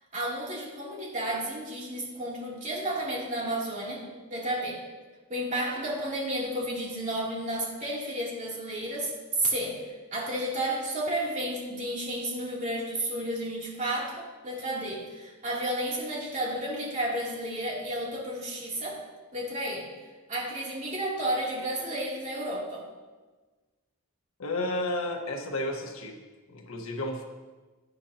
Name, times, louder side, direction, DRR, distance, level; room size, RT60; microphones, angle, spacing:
voice 1, 0.1-4.8 5.3-19.0 19.3-19.9 20.3-22.8, right 1 dB, 35° right, -5 dB, 3.0 m, -32 dB
voice 2, 24.4-26.2 26.5-27.2, left 1 dB, 90° left, 1 dB, 1.5 m, -32 dB
17.0 x 10.0 x 2.9 m, 1.3 s
head